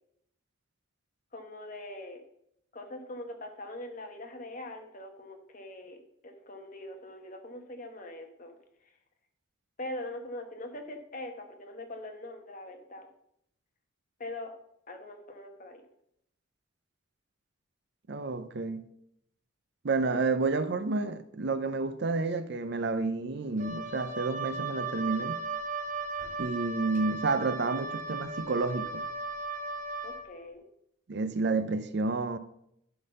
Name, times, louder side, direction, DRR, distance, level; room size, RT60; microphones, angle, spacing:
voice 1, 1.3-2.2 2.7-6.0 6.2-8.6 8.8-8.9 9.8-13.1 14.2-14.5 14.9-15.8 30.0-30.6, left 1 dB, 40° left, 1.2 m, -42 dB
voice 2, 18.1-18.8 19.8-25.4 26.4-29.0 31.1-32.4, right 3 dB, 55° right, 0.5 m, -30 dB
Wind instrument woodwind instrument, 23.6-30.3, right 3 dB, 40° right, 0.9 m, -36 dB
11.0 x 3.9 x 5.4 m
head